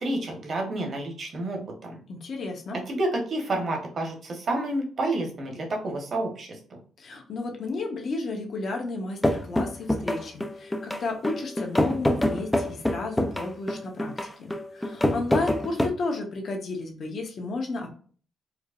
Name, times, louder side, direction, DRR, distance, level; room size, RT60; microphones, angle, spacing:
voice 1, 0.0-1.9 2.9-6.6, right 2 dB, 50° right, 1 dB, 1.2 m, -29 dB
voice 2, 2.1-2.8 7.0-17.9, left 3 dB, 55° left, 2 dB, 1.0 m, -33 dB
sound 1, 9.2-15.9, left 1 dB, 10° left, 0.5 m, -26 dB
4.6 x 2.2 x 2.5 m, 0.43 s
cardioid pair, 90°, 0 cm